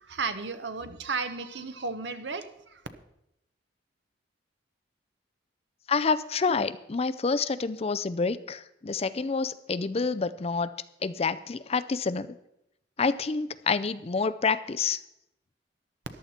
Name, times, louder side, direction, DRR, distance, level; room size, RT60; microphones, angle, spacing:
voice 1, 0.1-2.5, right 4 dB, 65° right, 10 dB, 1.0 m, -33 dB
voice 2, 5.9-10.7 11.0-12.3 13.0-15.0, left 4 dB, 35° left, 14 dB, 0.4 m, -28 dB
14.0 x 11.0 x 4.3 m, 0.81 s
head